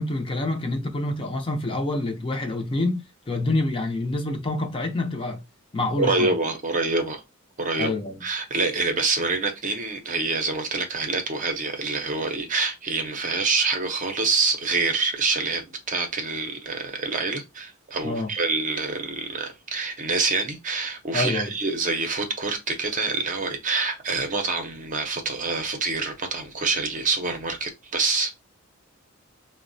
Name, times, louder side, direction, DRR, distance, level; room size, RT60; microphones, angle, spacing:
voice 1, 0.0-5.4 5.7-6.3 7.8-8.2 18.0-18.3 21.1-21.5, left 2 dB, 25° left, 0.5 m, -27 dB
voice 2, 6.0-7.2 7.6-7.9 8.2-28.3, right 3 dB, 40° right, 0.6 m, -26 dB
3.9 x 2.1 x 2.6 m
head